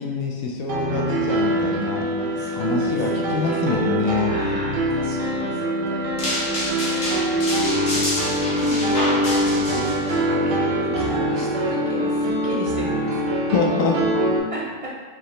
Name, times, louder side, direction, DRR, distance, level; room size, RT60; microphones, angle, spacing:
voice 1, 0.0-2.1 2.3-4.3 13.5-14.0, left 4 dB, 90° left, 0 dB, 1.0 m, -25 dB
Piano, 0.7-14.4, right 1 dB, 70° right, 0.9 m, -23 dB
voice 2, 1.4-3.8 4.3-6.2 6.5-7.2 7.5-7.9 8.2-13.3 14.5-15.0, right 1 dB, 50° right, -4 dB, 0.4 m, -35 dB
sound 1, 6.2-10.2, left 1 dB, 60° left, 1.3 m, -28 dB
4.9 x 2.8 x 3.1 m, 1.5 s
omnidirectional pair, 1.4 m